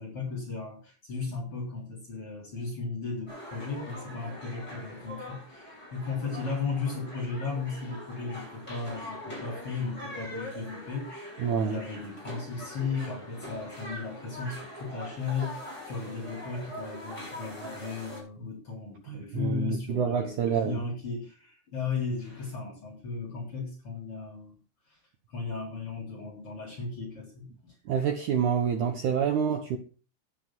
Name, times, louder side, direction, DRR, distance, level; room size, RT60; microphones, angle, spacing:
voice 1, 0.0-24.6 25.3-27.7 29.2-29.3, left 4 dB, 30° left, 3.9 m, -36 dB
sound 1, 3.3-18.2, equal, 5° left, 6.5 m, -43 dB
voice 2, 11.4-11.8 19.1-20.8 27.9-29.8, right 7 dB, 90° right, 1.7 m, -27 dB
10.5 x 7.8 x 6.1 m
omnidirectional pair, 5.4 m